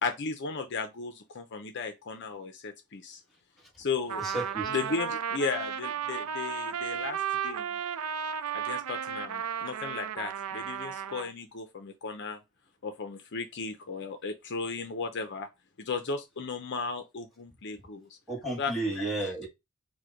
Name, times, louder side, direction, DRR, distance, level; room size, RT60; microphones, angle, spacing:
voice 1, 0.0-3.2 3.8-7.8 8.5-12.4 12.8-15.5 15.8-18.2 18.6-19.3, left 4 dB, 50° left, 0.6 m, -35 dB
Trumpet, 4.1-11.3, right 8 dB, 80° right, 0.4 m, -34 dB
voice 2, 4.2-4.7 18.3-19.5, right 2 dB, ahead, 1.5 m, -32 dB
4.7 x 2.2 x 4.8 m
head